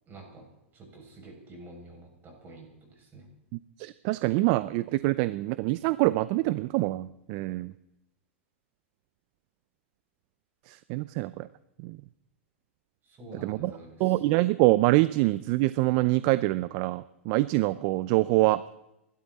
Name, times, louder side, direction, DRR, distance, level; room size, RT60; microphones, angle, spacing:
voice 1, 0.1-0.5 0.7-3.3 13.1-14.2, right 2 dB, 30° right, 1 dB, 6.8 m, -48 dB
voice 2, 3.5-7.7 10.7-11.5 11.8-12.0 13.4-13.7 14.0-18.6, right 19 dB, 50° right, 16 dB, 0.6 m, -25 dB
26.5 x 12.5 x 4.2 m, 0.91 s
hypercardioid pair, 110°, 7 cm